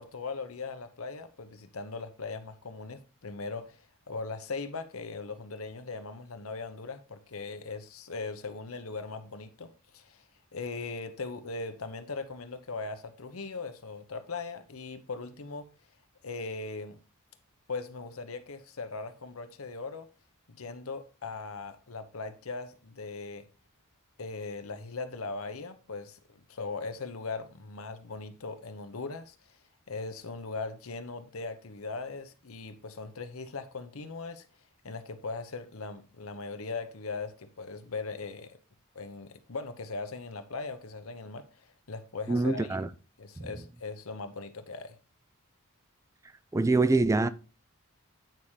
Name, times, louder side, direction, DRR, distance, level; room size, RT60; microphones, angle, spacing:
voice 1, 0.0-10.2 10.5-15.7 16.2-17.0 17.7-20.1 20.5-23.5 24.2-29.3 29.9-34.5 34.8-38.6 38.9-42.8 43.2-45.0, left 4 dB, 75° left, 1.0 m, -39 dB
voice 2, 42.3-42.9 43.4-43.5 46.5-47.3, right 3 dB, 15° right, 0.3 m, -25 dB
9.1 x 5.7 x 3.2 m
head